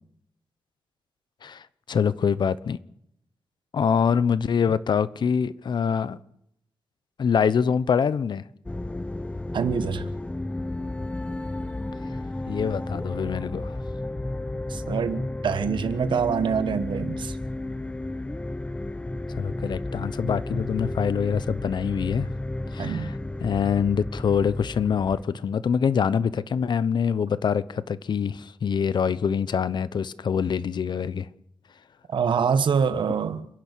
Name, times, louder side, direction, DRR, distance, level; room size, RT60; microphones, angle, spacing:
voice 1, 1.4-2.8 3.7-6.2 7.2-8.4 12.5-13.7 19.4-22.3 22.7-23.1 23.4-31.3, left 7 dB, 70° left, 1.0 m, -25 dB
sound 1, 8.7-25.2, left 2 dB, 15° left, 0.9 m, -32 dB
voice 2, 9.5-10.1 14.7-17.4 22.8-23.1 32.1-33.5, right 6 dB, 80° right, 1.5 m, -25 dB
29.5 x 11.0 x 8.5 m
wide cardioid pair, 115°, 8 cm